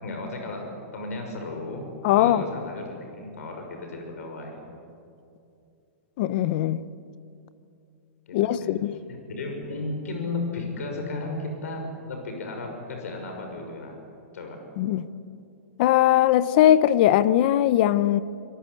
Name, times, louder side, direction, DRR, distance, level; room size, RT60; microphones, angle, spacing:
voice 1, 0.0-4.6 8.3-8.7 9.1-13.9 14.3-14.6, left 2 dB, 80° left, 6.4 m, -34 dB
voice 2, 2.0-2.4 6.2-6.8 8.3-9.0 14.8-15.1 15.8-18.2, left 12 dB, 35° left, 0.8 m, -20 dB
26.0 x 22.5 x 8.5 m
hypercardioid pair, 170°, 8 cm